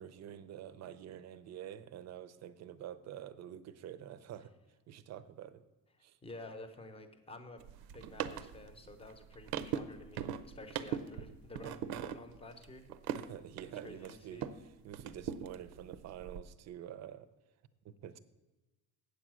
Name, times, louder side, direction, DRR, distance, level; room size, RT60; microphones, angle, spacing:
voice 1, 0.0-4.5 4.9-5.7 6.0-6.2 13.1-17.3 17.8-18.2, right 10 dB, 50° right, 14 dB, 0.6 m, -48 dB
voice 2, 6.2-7.7 7.9-12.8 13.6-14.5, left 2 dB, 15° left, 8 dB, 0.8 m, -51 dB
sound 1, 7.6-14.6 14.9-16.4, right 9 dB, 90° right, 0.6 m, -41 dB
8.1 x 8.0 x 6.2 m, 1.1 s
cardioid pair, 170°, 35 cm